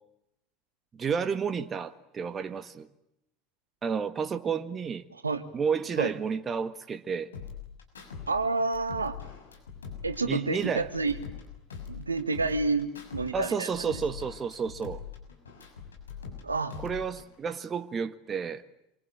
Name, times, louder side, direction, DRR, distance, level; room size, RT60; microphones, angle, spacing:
voice 1, 0.9-2.9 3.8-5.0 5.5-7.3 10.3-10.8 13.3-15.0 16.8-18.6, right 6 dB, 30° right, 1.7 m, -31 dB
voice 2, 5.1-5.4 6.0-6.1 8.3-9.2 10.0-11.1 11.9-14.0 16.4-16.7, right 3 dB, 85° right, 1.7 m, -29 dB
sound 1, 7.3-8.3 8.6-11.4 11.7-13.3 13.6-16.4 16.7-17.3, left 7 dB, 80° left, 6.7 m, -42 dB
27.0 x 24.5 x 8.8 m
figure-of-eight pair, 70°, 0 cm